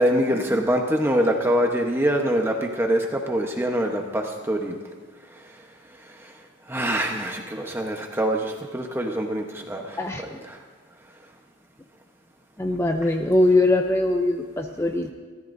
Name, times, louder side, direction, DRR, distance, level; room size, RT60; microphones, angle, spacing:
voice 1, 0.0-4.8 6.2-6.3 6.7-10.6, equal, 10° right, 1 dB, 1.0 m, -24 dB
voice 2, 12.6-15.1, left 2 dB, 10° left, 4 dB, 0.6 m, -21 dB
29.5 x 14.0 x 2.7 m, 1.5 s
head